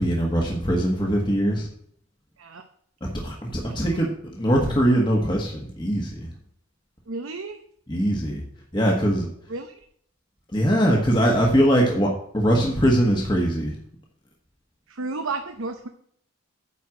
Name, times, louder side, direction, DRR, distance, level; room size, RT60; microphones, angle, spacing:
voice 1, 0.0-1.7 3.0-6.3 7.9-8.4 8.7-9.3 10.5-13.8, equal, 20° left, -1 dB, 1.5 m, -22 dB
voice 2, 7.1-7.6 9.5-9.8 14.9-15.9, right 3 dB, 70° right, 6 dB, 0.9 m, -32 dB
9.6 x 4.6 x 7.7 m, 0.64 s
head